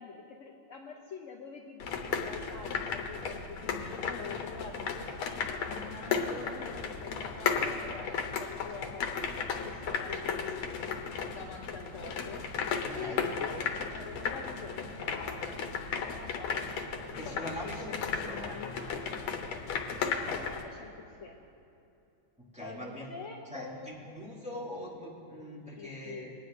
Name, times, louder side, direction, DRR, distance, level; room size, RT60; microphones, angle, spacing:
voice 1, 0.0-9.1 9.6-15.4 16.1-16.7 17.3-17.9 18.1-19.1 20.0-21.4 22.5-24.3 25.7-26.3, left 5 dB, 75° left, 0 dB, 0.7 m, -45 dB
sound 1, 1.8-20.6, left 6 dB, 90° left, 1.7 m, -35 dB
voice 2, 12.8-13.3 17.2-18.5 22.5-23.1 23.5-26.3, left 1 dB, 5° right, -8 dB, 2.2 m, -42 dB
21.0 x 9.5 x 2.5 m, 2.8 s
omnidirectional pair, 2.2 m